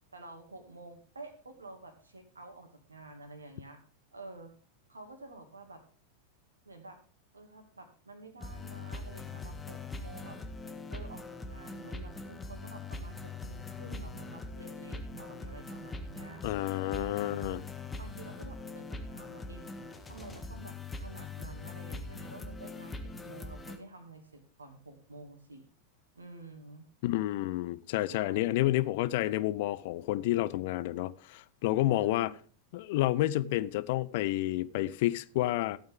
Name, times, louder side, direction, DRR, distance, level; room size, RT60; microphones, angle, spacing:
voice 1, 0.1-3.8 4.1-4.5 4.9-5.8 6.7-7.0 7.3-10.4 10.9-16.4 16.9-17.6 18.0-19.7 20.1-25.7 26.2-26.9 28.1-28.8 31.6-32.4, right 2 dB, 75° right, 2.2 m, -49 dB
sound 1, 8.4-23.8, left 3 dB, 15° left, 1.6 m, -42 dB
voice 2, 16.4-17.6 27.0-32.3 32.7-35.8, left 16 dB, 50° left, 0.6 m, -30 dB
15.0 x 8.9 x 3.6 m
figure-of-eight pair, 90°, 0 cm